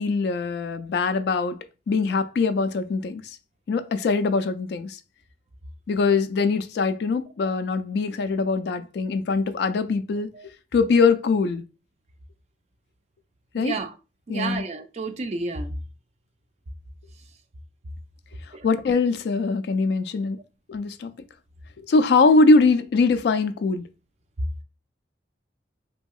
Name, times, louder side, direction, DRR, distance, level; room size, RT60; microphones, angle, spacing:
voice 1, 0.0-1.6 1.9-3.4 3.7-5.0 5.9-10.3 10.7-11.6 13.5-13.8 14.3-14.6 18.6-20.4 20.7-21.1 21.9-23.9, left 4 dB, 65° left, 0.3 m, -22 dB
voice 2, 13.6-13.9 14.3-15.8 18.5-18.7, right 3 dB, 35° right, 0.3 m, -31 dB
2.8 x 2.7 x 2.2 m
head